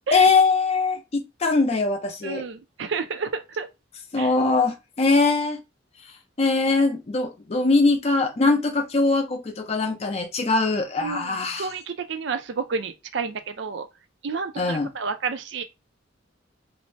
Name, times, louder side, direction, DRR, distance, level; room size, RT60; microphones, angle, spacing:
voice 1, 0.1-2.5 4.1-5.6 6.4-11.7 14.6-14.9, left 3 dB, 35° left, 0.5 m, -22 dB
voice 2, 2.2-3.7 4.2-4.3 11.0-13.9 14.2-15.6, right 5 dB, 65° right, 0.5 m, -30 dB
2.6 x 2.1 x 3.2 m
head